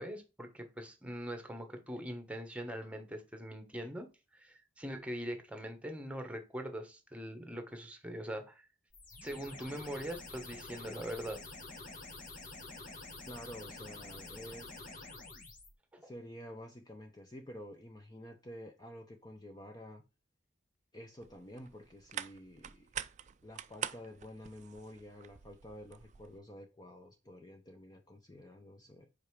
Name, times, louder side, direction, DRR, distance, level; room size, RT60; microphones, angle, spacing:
voice 1, 0.0-4.1 4.3-8.7 9.2-11.4 15.9-16.1, equal, 5° right, 1.2 m, -42 dB
sound 1, 8.9-15.7, left 3 dB, 45° left, 1.3 m, -48 dB
voice 2, 13.3-14.8 16.0-20.0 20.9-22.9 23.4-29.1, equal, 20° left, 0.7 m, -50 dB
sound 2, 21.2-26.4, right 9 dB, 40° right, 0.4 m, -46 dB
5.3 x 4.9 x 4.7 m
head